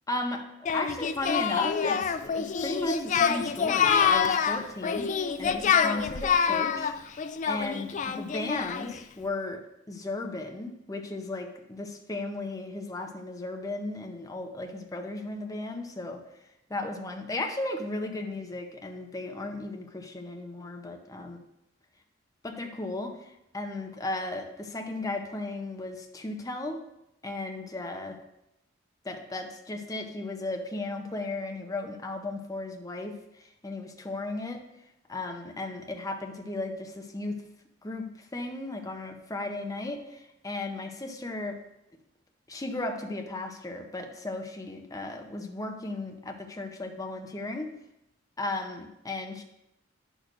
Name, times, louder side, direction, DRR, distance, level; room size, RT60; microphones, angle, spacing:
voice 1, 0.1-7.2 7.5-9.6 9.9-16.2 16.7-21.4 22.4-26.8 27.2-28.2 29.0-34.6 35.1-37.4 37.8-41.6 42.5-47.7 48.4-49.4, left 2 dB, 20° left, 3 dB, 0.7 m, -35 dB
Singing, 0.7-9.0, left 7 dB, 40° left, 0.4 m, -26 dB
10.5 x 6.3 x 2.6 m, 0.86 s
head